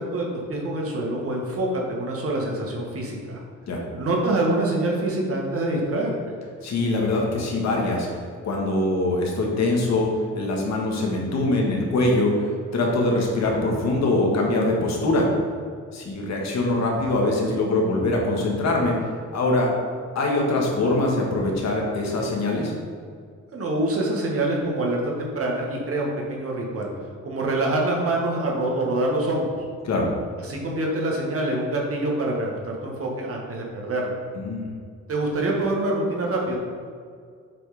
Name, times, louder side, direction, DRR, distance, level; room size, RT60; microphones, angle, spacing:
voice 1, 0.0-3.4 3.9-6.1 23.5-26.9 27.2-29.5 30.4-34.2 35.1-36.6, right 2 dB, 50° right, -1 dB, 1.6 m, -25 dB
voice 2, 6.6-8.1 8.4-15.3 15.9-19.0 19.3-19.7 20.1-22.7 29.8-30.1 34.3-34.6, left 2 dB, 60° left, -1 dB, 1.6 m, -23 dB
7.7 x 3.6 x 4.9 m, 2.1 s
cardioid pair, 90°, 30 cm